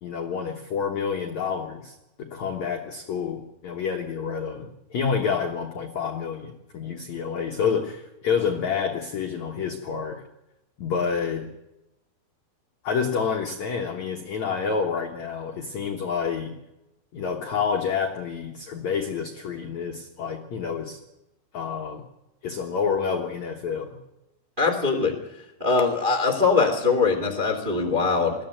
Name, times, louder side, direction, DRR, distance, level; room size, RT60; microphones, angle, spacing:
voice 1, 0.0-10.2 10.8-11.5 12.8-16.6 17.1-21.0 21.5-22.0 22.4-24.0, left 6 dB, 80° left, 3 dB, 1.6 m, -28 dB
voice 2, 24.6-25.1 25.6-28.3, left 4 dB, 20° right, 4 dB, 1.2 m, -22 dB
21.5 x 15.5 x 9.1 m, 0.95 s
omnidirectional pair, 5.5 m